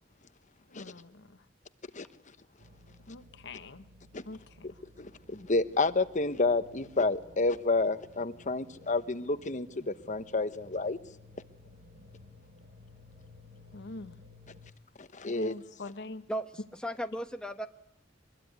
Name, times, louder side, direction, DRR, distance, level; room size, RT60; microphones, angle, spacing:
voice 1, 0.7-1.4 3.1-3.9 4.3-4.7 13.7-14.2 15.2-16.2, left 2 dB, 65° left, 1.2 m, -44 dB
sound 1, 2.6-14.7, left 2 dB, 45° right, 1.2 m, -56 dB
voice 2, 5.0-11.0 15.0-15.6, left 3 dB, 40° left, 1.1 m, -30 dB
voice 3, 16.3-17.7, equal, 5° left, 1.0 m, -36 dB
24.5 x 21.0 x 9.5 m
head